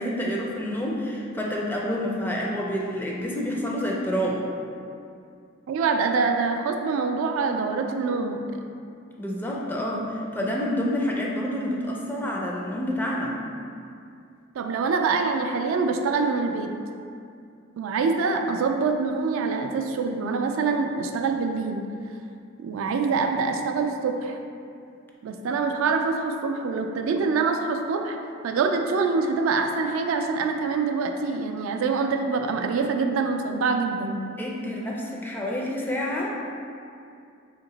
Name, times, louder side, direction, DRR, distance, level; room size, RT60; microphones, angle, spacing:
voice 1, 0.0-4.4 9.2-13.3 34.4-36.3, equal, 10° left, -3 dB, 0.4 m, -28 dB
voice 2, 5.7-8.4 14.6-16.7 17.8-21.8 22.6-24.4 25.2-28.2 28.4-34.2, right 4 dB, 70° right, 6 dB, 0.3 m, -25 dB
2.9 x 2.9 x 3.9 m, 2.4 s
head